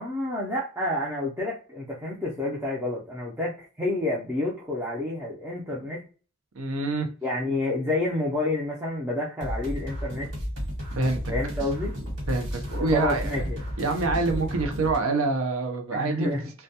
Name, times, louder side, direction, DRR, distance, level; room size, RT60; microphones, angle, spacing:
voice 1, 0.0-6.1 7.2-10.3 11.3-11.9 12.7-13.6 15.9-16.5, left 2 dB, 10° right, -6 dB, 0.4 m, -29 dB
voice 2, 6.6-7.1 11.0-11.2 12.3-13.5 13.8-16.3, right 3 dB, 75° right, 4 dB, 0.5 m, -26 dB
sound 1, 9.4-15.0, equal, 55° right, 1.2 m, -32 dB
2.2 x 2.2 x 2.7 m, 0.35 s
head